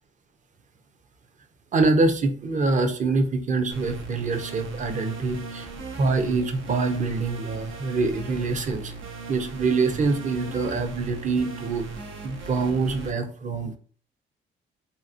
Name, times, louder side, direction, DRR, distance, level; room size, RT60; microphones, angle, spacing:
voice 1, 1.7-5.7 6.0-8.9 9.3-11.9 12.2-13.8, right 3 dB, 40° right, 7 dB, 0.6 m, -25 dB
sound 1, 3.7-13.1, right 4 dB, 80° right, 0.7 m, -37 dB
3.5 x 2.8 x 2.5 m, 0.42 s
cardioid pair, 90°, 20 cm